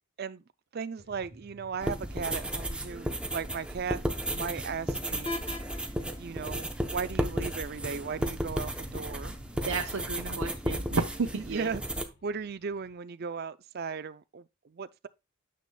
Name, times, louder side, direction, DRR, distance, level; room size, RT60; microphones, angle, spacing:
voice 1, 0.7-5.4 6.2-9.4 10.2-10.4 11.4-11.8 12.2-15.1, right 5 dB, 45° right, 0.4 m, -37 dB
sound 1, 1.0-13.0, equal, 50° left, 1.4 m, -56 dB
sound 2, 1.8-12.1, right 1 dB, 5° right, 0.7 m, -34 dB
sound 3, 5.3-11.3, left 2 dB, 25° left, 0.8 m, -46 dB
voice 2, 9.6-11.8, right 4 dB, 80° right, 0.8 m, -32 dB
9.5 x 6.7 x 2.3 m
head